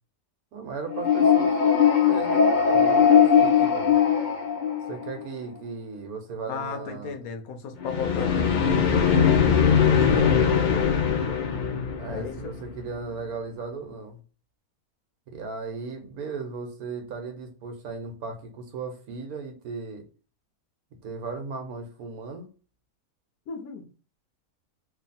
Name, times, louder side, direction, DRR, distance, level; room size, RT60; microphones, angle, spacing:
voice 1, 0.5-1.7 2.0-4.0 4.9-7.1 12.0-14.2 15.3-20.0 21.0-22.5, right 4 dB, 85° right, 4 dB, 1.3 m, -36 dB
sound 1, 0.9-5.2 7.8-12.8, left 7 dB, 60° left, 0.5 m, -20 dB
voice 2, 6.5-10.4 12.1-12.6 23.5-23.9, left 5 dB, 75° left, 5 dB, 1.2 m, -35 dB
3.2 x 2.4 x 4.1 m, 0.36 s
omnidirectional pair, 1.5 m